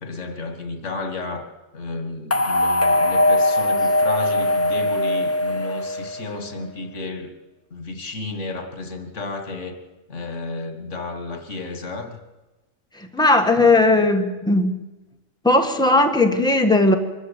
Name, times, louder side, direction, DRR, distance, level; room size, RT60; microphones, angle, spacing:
voice 1, 0.0-7.3 7.7-9.8 10.1-12.2, left 3 dB, 85° left, 7 dB, 2.2 m, -32 dB
sound 1, 2.3-6.5, left 1 dB, 20° left, 0.4 m, -20 dB
voice 2, 12.9-14.8 15.4-16.9, left 2 dB, 5° left, 5 dB, 1.5 m, -17 dB
23.5 x 14.0 x 8.3 m, 1.1 s
omnidirectional pair, 1.2 m